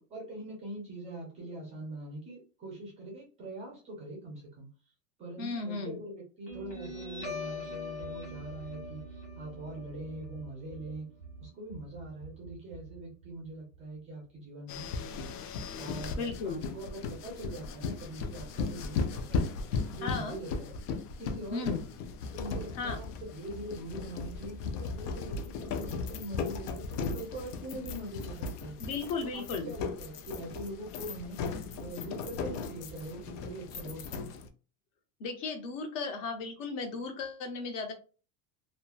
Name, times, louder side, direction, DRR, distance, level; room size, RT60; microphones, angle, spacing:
voice 1, 0.1-4.7 5.2-11.1 11.4-15.4 15.8-19.5 19.9-20.8 21.2-21.9 22.3-28.8 29.2-31.4 31.8-34.5, right 1 dB, 15° right, -2 dB, 0.4 m, -43 dB
voice 2, 5.4-6.0 16.2-16.6 20.0-20.4 21.5-21.8 22.8-23.0 28.8-29.7 35.2-37.9, left 4 dB, 55° left, 5 dB, 0.8 m, -35 dB
Guitar, 6.5-13.5, left 1 dB, 15° left, 1.1 m, -43 dB
sound 1, 14.7-34.5, left 4 dB, 85° left, 0.6 m, -37 dB
2.9 x 2.1 x 2.3 m, 0.36 s
supercardioid pair, 165°, 45 cm